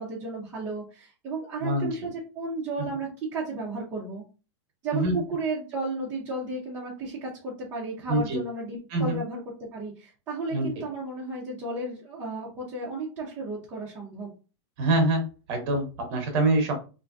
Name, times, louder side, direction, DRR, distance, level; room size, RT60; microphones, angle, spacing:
voice 1, 0.0-4.2 4.8-9.4 9.7-14.3, right 2 dB, 15° right, -6 dB, 0.6 m, -33 dB
voice 2, 8.1-8.4 8.9-9.2 10.5-10.7 14.8-16.7, right 2 dB, 30° right, 3 dB, 1.0 m, -25 dB
3.5 x 2.6 x 2.5 m, 0.33 s
supercardioid pair, 170°, 15 cm